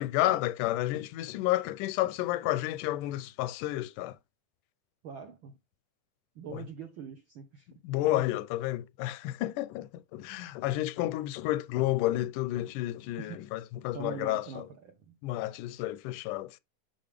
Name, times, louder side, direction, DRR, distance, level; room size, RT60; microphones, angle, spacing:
voice 1, 0.0-4.2 6.5-6.6 7.8-14.6 15.2-16.6, left 15 dB, 85° left, 2.1 m, -31 dB
voice 2, 5.0-5.6 6.3-7.7 8.0-8.2 13.2-13.5 13.9-15.1, right 6 dB, 75° right, 1.2 m, -43 dB
8.6 x 5.8 x 3.4 m
omnidirectional pair, 3.6 m